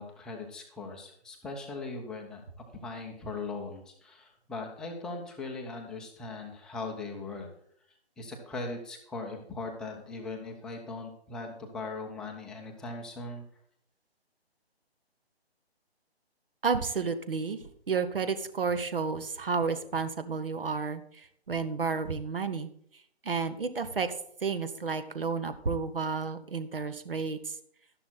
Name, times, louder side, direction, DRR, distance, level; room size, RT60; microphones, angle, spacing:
voice 1, 0.0-7.5 8.2-13.4, left 3 dB, ahead, 0 dB, 0.8 m, -39 dB
voice 2, 16.6-17.6 17.9-22.7 23.2-24.1 24.4-27.6, right 5 dB, 60° right, 11 dB, 1.8 m, -31 dB
12.5 x 11.0 x 4.2 m, 0.65 s
figure-of-eight pair, 145°, 32 cm